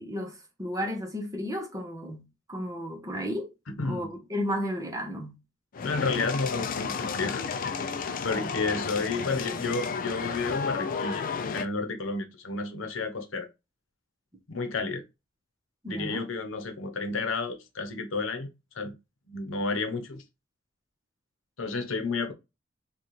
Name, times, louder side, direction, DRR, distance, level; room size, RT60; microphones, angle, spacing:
voice 1, 0.0-3.5 3.8-5.4 8.4-8.5 15.8-16.2, equal, 20° right, 0.9 m, -33 dB
voice 2, 3.7-4.1 5.8-7.8 8.2-11.2 11.5-13.5 14.5-15.0 15.9-18.5 18.8-18.9 19.3-20.2 21.6-22.3, left 3 dB, 75° left, 0.8 m, -31 dB
sound 1, 5.7-11.7, left 5 dB, 45° left, 0.4 m, -32 dB
4.2 x 2.4 x 3.1 m
head